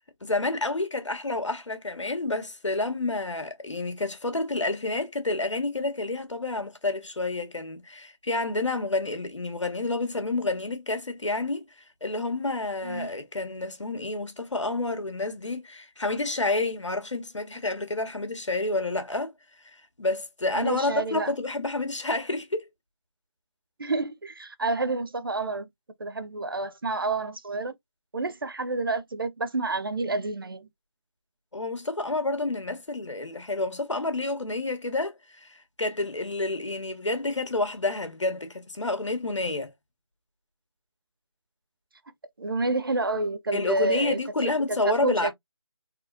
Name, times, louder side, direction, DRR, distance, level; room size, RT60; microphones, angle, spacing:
voice 1, 0.2-11.7 12.0-19.3 20.0-22.7 31.5-39.7 43.5-45.3, left 2 dB, 75° left, 1.6 m, -29 dB
voice 2, 20.5-21.3 23.8-25.7 26.0-27.8 28.1-30.7 42.4-44.2 44.7-45.3, right 2 dB, 50° right, 0.6 m, -29 dB
4.2 x 3.0 x 2.6 m
figure-of-eight pair, 170°, 15 cm